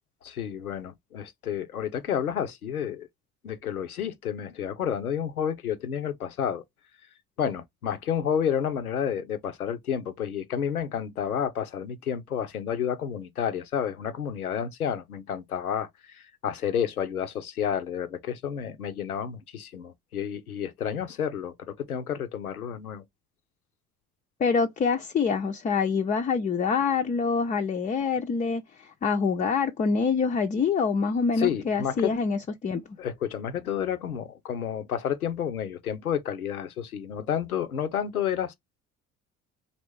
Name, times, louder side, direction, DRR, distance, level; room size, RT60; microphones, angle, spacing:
voice 1, 0.2-3.1 3.4-6.6 7.4-23.0 31.4-32.1 33.0-38.6, left 8 dB, 90° left, 0.5 m, -30 dB
voice 2, 24.4-28.6 29.0-32.8, left 5 dB, 20° left, 0.4 m, -25 dB
4.1 x 2.9 x 3.1 m
figure-of-eight pair, 50°, 42 cm